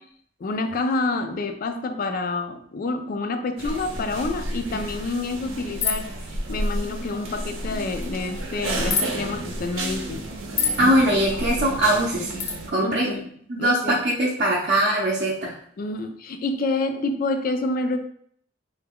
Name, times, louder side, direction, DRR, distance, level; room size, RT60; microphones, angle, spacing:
voice 1, 0.4-6.1 6.5-10.2 12.8-13.3 13.6-14.0 15.8-18.0, left 3 dB, 45° left, 7 dB, 0.4 m, -28 dB
sound 1, 3.6-12.7, right 1 dB, 85° right, 0.6 m, -31 dB
sound 2, 5.8-6.1 8.9-9.1 10.6-10.8 12.4-12.6, left 5 dB, 75° left, 0.7 m, -24 dB
voice 2, 10.8-12.4 12.7-13.1 13.5-15.5, right 1 dB, 45° right, -5 dB, 0.6 m, -21 dB
3.3 x 2.2 x 3.5 m, 0.64 s
head